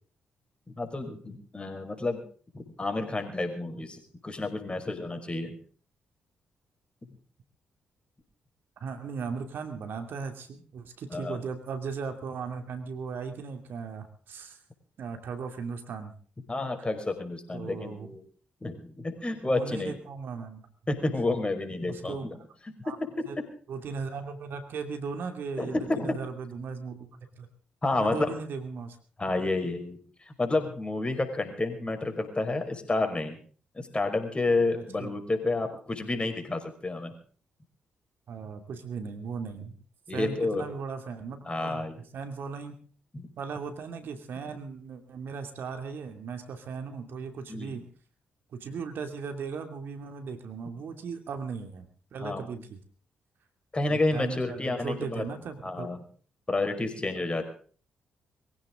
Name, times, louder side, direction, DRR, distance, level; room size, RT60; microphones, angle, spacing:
voice 1, 0.7-2.2 2.5-5.5 11.1-11.4 16.5-18.2 18.6-19.9 20.9-22.4 22.9-23.1 25.6-26.2 27.8-28.3 29.2-30.0 30.3-33.4 33.8-37.1 40.1-40.6 41.5-42.0 43.1-43.3 47.5-47.7 52.2-52.6 53.7-55.2 55.6-56.0 56.5-57.4, left 2 dB, 25° left, 5 dB, 5.3 m, -30 dB
voice 2, 8.8-14.6 15.0-16.1 17.5-18.1 19.5-20.6 21.9-22.3 22.8-23.0 23.3-23.4 23.7-27.5 28.0-29.0 34.7-35.1 38.3-39.8 40.1-41.9 42.1-42.8 43.4-47.8 48.5-52.8 53.9-55.9, right 5 dB, 65° right, 6 dB, 2.7 m, -37 dB
22.5 x 16.0 x 3.9 m, 0.43 s
hypercardioid pair, 45°, 4 cm